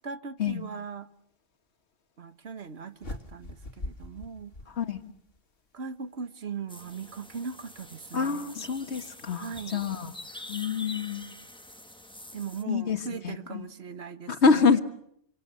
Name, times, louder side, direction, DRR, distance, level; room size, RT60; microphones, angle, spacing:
voice 1, 0.0-1.1 2.2-4.5 5.7-8.5 9.3-9.9 12.3-14.8, right 6 dB, 75° right, 1.6 m, -39 dB
sound 1, 3.0-5.4, left 2 dB, 60° left, 2.1 m, -41 dB
voice 2, 4.7-5.1 8.1-10.1 10.5-11.4 12.7-13.7 14.3-14.8, left 5 dB, 85° left, 1.8 m, -26 dB
sound 2, 6.7-12.6, left 1 dB, 5° left, 1.3 m, -45 dB
27.5 x 24.5 x 6.8 m
omnidirectional pair, 1.1 m